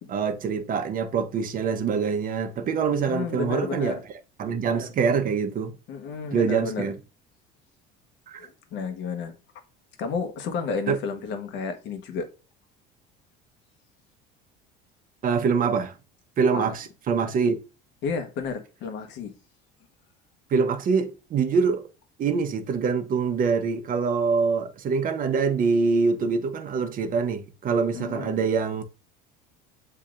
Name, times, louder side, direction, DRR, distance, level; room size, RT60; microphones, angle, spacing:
voice 1, 0.1-4.0 4.4-5.8 6.3-6.9 8.3-8.5 10.9-11.0 15.2-15.9 16.4-17.6 20.5-21.8 22.2-28.8, right 5 dB, 40° right, 0.8 m, -24 dB
voice 2, 3.0-4.0 5.9-6.8 8.4-9.4 10.0-12.3 16.5-16.7 18.0-19.3 27.9-28.4, left 5 dB, 60° left, 1.1 m, -32 dB
7.8 x 2.8 x 2.4 m
supercardioid pair, 105°, 21 cm